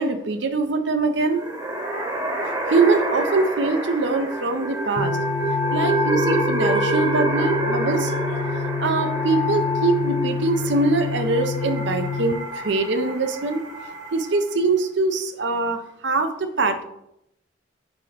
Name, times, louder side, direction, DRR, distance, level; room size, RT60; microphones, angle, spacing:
voice 1, 0.0-1.4 2.7-5.2 5.7-8.1 8.8-13.6 14.1-16.8, right 3 dB, 75° right, 8 dB, 0.7 m, -23 dB
sound 1, 1.2-14.6, right 2 dB, 20° right, 1.0 m, -28 dB
sound 2, 5.0-12.3, left 5 dB, 35° left, 0.4 m, -26 dB
7.3 x 5.3 x 3.3 m, 0.80 s
head